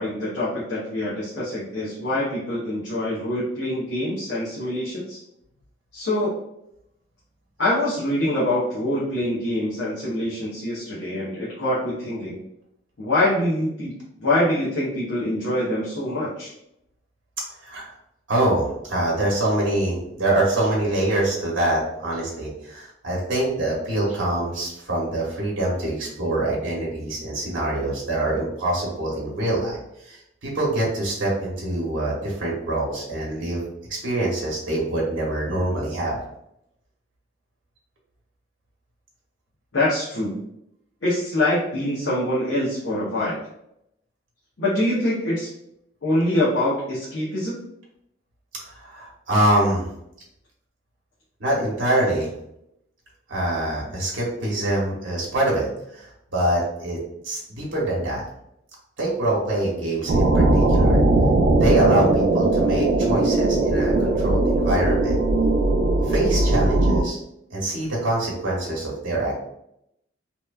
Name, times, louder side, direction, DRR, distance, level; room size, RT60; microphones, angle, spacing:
voice 1, 0.0-5.2 5.9-6.4 7.6-12.4 13.0-16.5 39.7-40.4 41.0-43.4 44.6-45.5 46.0-47.6, left 1 dB, 70° left, -7 dB, 0.7 m, -24 dB
voice 2, 18.3-29.8 30.0-33.7 34.0-36.2 48.7-49.9 51.4-52.3 53.3-57.0 57.2-58.2 59.0-61.0 61.5-65.2 66.0-67.2 67.5-69.4, right 1 dB, 85° right, -4 dB, 0.8 m, -25 dB
sound 1, 60.1-67.0, right 2 dB, 55° right, 0.4 m, -19 dB
2.9 x 2.2 x 2.2 m, 0.79 s
head